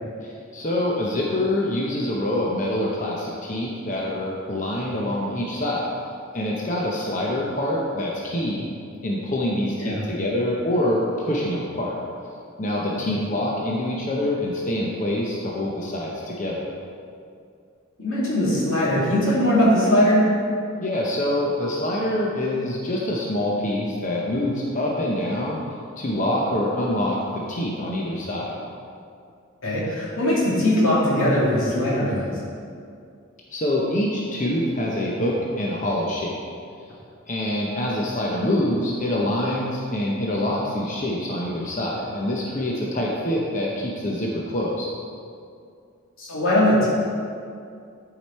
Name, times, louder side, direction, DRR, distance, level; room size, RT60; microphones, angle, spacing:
voice 1, 0.5-5.9 6.3-8.7 9.0-12.0 12.6-16.7 20.8-25.6 26.0-28.6 33.5-36.3 37.3-44.9, left 1 dB, 40° left, -3 dB, 0.8 m, -25 dB
voice 2, 18.0-20.2 29.6-32.4 46.2-46.9, left 1 dB, 85° left, -7 dB, 2.2 m, -20 dB
11.5 x 5.0 x 4.3 m, 2.4 s
head